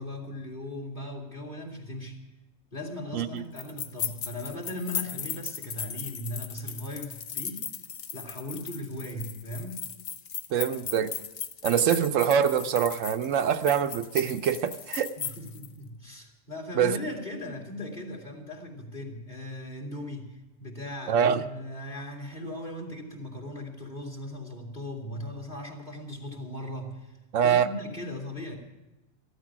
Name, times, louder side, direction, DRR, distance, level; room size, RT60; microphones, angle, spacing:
voice 1, 0.0-2.2 2.7-7.7 8.1-9.9 15.2-28.6, left 1 dB, 35° left, 2.8 m, -38 dB
sound 1, 3.6-15.7, left 7 dB, 55° left, 0.9 m, -37 dB
voice 2, 10.5-11.1 11.6-15.1 16.8-17.0 21.1-21.4 27.3-27.7, right 8 dB, 80° right, 1.1 m, -24 dB
14.5 x 12.5 x 6.0 m
omnidirectional pair, 1.3 m